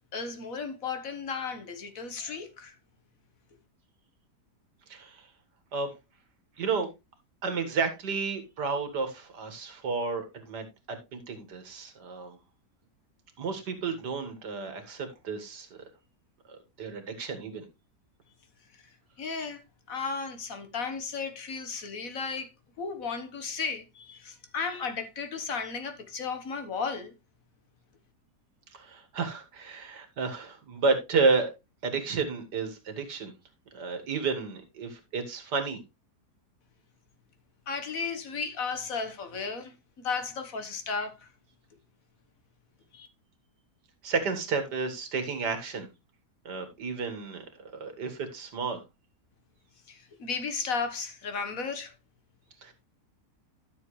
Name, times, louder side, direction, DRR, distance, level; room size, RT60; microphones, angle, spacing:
voice 1, 0.1-2.7 19.2-19.6 19.9-22.5 22.8-27.1 37.7-41.3 42.9-43.1 49.9-51.9, left 5 dB, 55° left, 1.7 m, -34 dB
voice 2, 4.9-5.3 5.7-5.9 6.6-6.9 7.4-12.4 13.4-15.7 16.5-17.7 28.7-31.5 31.8-33.4 33.7-35.8 44.0-45.9 46.5-48.8 52.6-52.7, right 4 dB, 85° right, 2.3 m, -31 dB
12.0 x 6.9 x 3.2 m
omnidirectional pair, 1.7 m